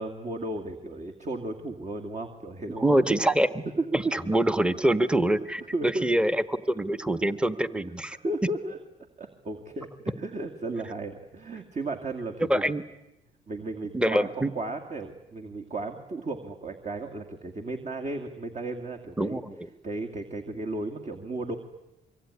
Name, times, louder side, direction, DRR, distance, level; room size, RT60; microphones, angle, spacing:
voice 1, 0.0-2.9 3.8-4.0 5.7-6.2 8.1-8.8 9.2-9.9 10.2-12.7 13.5-14.3 14.5-19.4 19.8-21.6, right 2 dB, 35° right, 3 dB, 2.4 m, -34 dB
voice 2, 2.8-3.6 3.9-8.2 12.5-12.8 13.9-14.5 19.2-19.7, right 1 dB, 5° right, 12 dB, 1.3 m, -25 dB
25.0 x 24.0 x 9.9 m, 0.94 s
cardioid pair, 90°, 20 cm